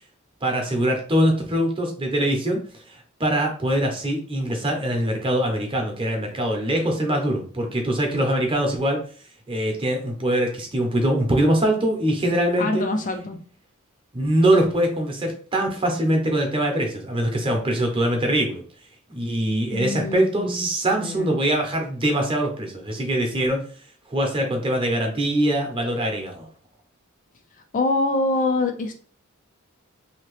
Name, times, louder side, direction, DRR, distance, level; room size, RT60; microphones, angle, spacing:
voice 1, 0.4-2.6 2.9-9.0 9.5-12.8 14.1-18.6 19.1-23.6 24.1-26.5, right 1 dB, 25° right, 2 dB, 0.8 m, -23 dB
voice 2, 12.6-13.4 19.7-20.7 21.0-21.4 27.7-28.9, left 2 dB, 35° left, 5 dB, 0.4 m, -25 dB
2.9 x 2.8 x 3.2 m, 0.42 s
head